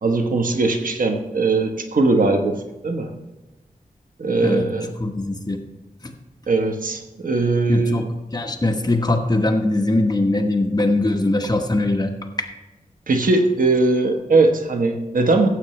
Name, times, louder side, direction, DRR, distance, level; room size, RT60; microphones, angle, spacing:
voice 1, 0.0-2.6 2.8-3.1 4.2-4.9 6.5-8.0 13.1-15.5, right 3 dB, 75° right, 5 dB, 1.1 m, -20 dB
voice 2, 5.0-5.6 6.0-6.1 7.7-8.0 8.3-12.1 12.4-12.5, left 2 dB, 30° left, 3 dB, 1.2 m, -21 dB
14.5 x 8.1 x 3.2 m, 1.1 s
wide cardioid pair, 80°, 14 cm